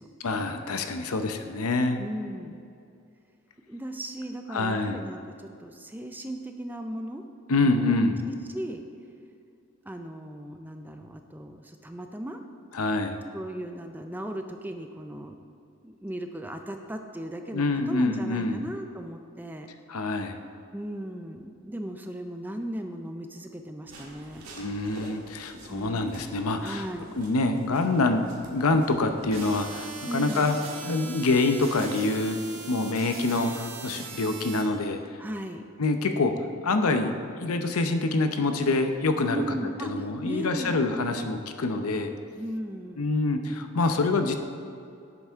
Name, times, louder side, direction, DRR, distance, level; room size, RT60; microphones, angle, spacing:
voice 1, 0.2-2.0 4.5-5.0 7.5-8.2 12.7-13.2 17.5-18.7 19.9-20.4 24.6-26.9 27.2-28.2 28.5-30.6 30.8-35.0 35.8-36.3 36.6-39.4 39.8-42.1 43.0-44.4, left 3 dB, 90° left, 7 dB, 0.7 m, -26 dB
voice 2, 2.0-2.6 3.7-7.2 7.6-8.8 9.8-12.4 13.3-15.4 15.8-19.7 20.7-24.5 25.7-26.1 26.6-27.1 30.1-30.5 35.2-35.6 39.3-40.8 42.4-43.1, right 1 dB, 10° right, 5 dB, 0.4 m, -37 dB
sound 1, 23.8-29.7, right 1 dB, 80° right, 1.8 m, -47 dB
sound 2, 29.3-34.6, right 4 dB, 65° right, 1.4 m, -40 dB
11.0 x 8.1 x 3.6 m, 2.5 s
head